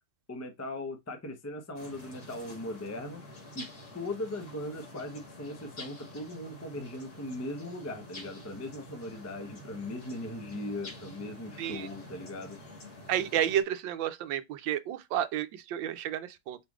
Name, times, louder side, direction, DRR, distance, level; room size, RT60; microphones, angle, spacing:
voice 1, 0.3-3.2 3.5-3.7 3.9-12.6, left 1 dB, 20° left, 0.4 m, -39 dB
sound 1, 1.8-13.6, left 1 dB, 55° left, 2.2 m, -48 dB
voice 2, 13.1-16.6, right 10 dB, 85° right, 1.3 m, -31 dB
4.8 x 3.3 x 2.4 m
omnidirectional pair, 2.0 m